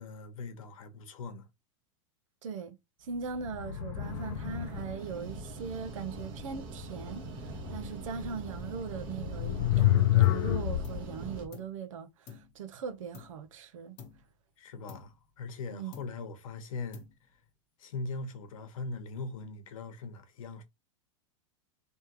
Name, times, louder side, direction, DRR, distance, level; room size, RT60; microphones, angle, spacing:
voice 1, 0.0-1.5 14.6-17.0 17.8-20.6, left 3 dB, 90° left, 1.1 m, -40 dB
voice 2, 2.4-14.0 15.7-15.9, right 6 dB, 80° right, 0.9 m, -40 dB
sound 1, 3.3-5.1 8.1-8.2 9.1-11.0, left 14 dB, 65° left, 0.4 m, -28 dB
sound 2, 4.0-11.5, right 1 dB, 35° right, 1.1 m, -42 dB
sound 3, 10.2-10.5 10.8-11.8 12.3-13.6 14.0-14.4 14.9-15.6 15.9-16.4 16.9-17.5, left 7 dB, 35° left, 0.9 m, -52 dB
3.6 x 3.1 x 2.9 m
supercardioid pair, 170°, 17 cm